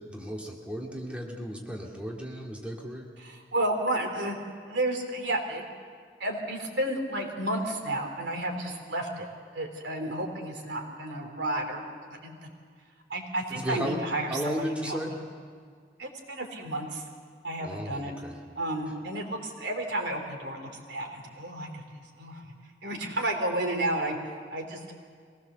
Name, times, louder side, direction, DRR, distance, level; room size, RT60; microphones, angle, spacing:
voice 1, 0.1-3.1 13.5-14.0 14.3-15.1 17.6-18.4, equal, 5° right, -1 dB, 2.3 m, -34 dB
voice 2, 3.2-5.7 6.2-9.3 9.5-11.8 12.1-12.5 13.1-15.1 16.0-17.0 17.4-18.1 18.5-22.5 22.8-24.9, right 1 dB, 85° right, 3 dB, 3.3 m, -32 dB
24.0 x 18.5 x 6.9 m, 2.1 s
head